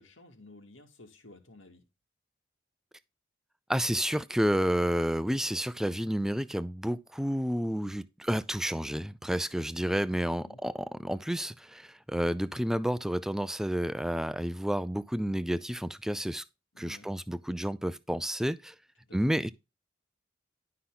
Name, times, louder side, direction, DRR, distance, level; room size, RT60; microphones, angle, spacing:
voice 1, 0.0-1.8 10.4-10.6 16.7-17.1 19.1-19.4, left 2 dB, 80° left, 2.2 m, -53 dB
voice 2, 3.7-16.4 16.8-18.7 19.1-19.5, equal, ahead, 0.4 m, -30 dB
11.5 x 5.7 x 3.8 m
head